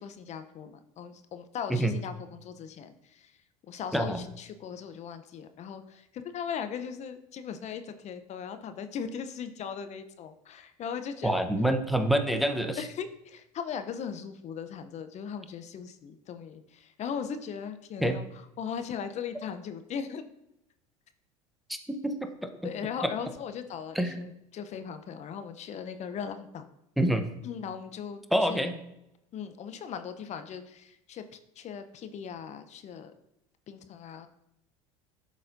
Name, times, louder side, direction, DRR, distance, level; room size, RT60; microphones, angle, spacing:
voice 1, 0.0-3.3 3.7-11.5 12.8-20.2 22.6-26.6 27.4-28.7 29.3-31.2 31.6-33.1 33.7-34.3, left 7 dB, 40° left, 9 dB, 0.7 m, -38 dB
voice 2, 3.9-4.3 11.2-12.8 18.0-18.1 21.9-22.3 22.6-22.7 24.0-24.2 27.0-27.2 28.3-28.8, right 1 dB, ahead, 6 dB, 0.8 m, -26 dB
12.0 x 4.1 x 2.6 m, 0.84 s
hypercardioid pair, 85°, 18 cm